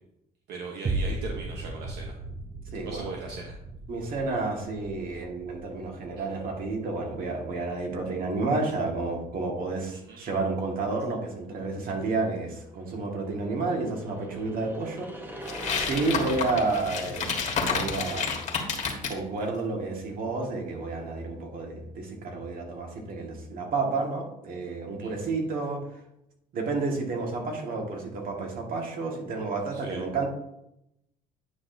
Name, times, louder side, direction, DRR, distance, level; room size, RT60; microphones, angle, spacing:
voice 1, 0.5-2.2 2.8-3.6 6.2-6.3 9.9-10.2 25.0-25.1 29.7-30.0, right 4 dB, 75° right, 0 dB, 1.1 m, -39 dB
sound 1, 0.9-9.4 9.9-10.0, right 2 dB, 30° right, 0.7 m, -37 dB
voice 2, 2.7-3.1 3.9-15.4 15.8-18.3 19.1-25.8 26.5-30.3, right 3 dB, 60° right, 1 dB, 1.9 m, -31 dB
sound 2, 12.4-19.0, equal, 10° right, 1.0 m, -43 dB
sound 3, 15.5-19.2, left 5 dB, 45° left, 1.6 m, -30 dB
9.6 x 5.9 x 2.7 m, 0.83 s
cardioid pair, 110°, 17 cm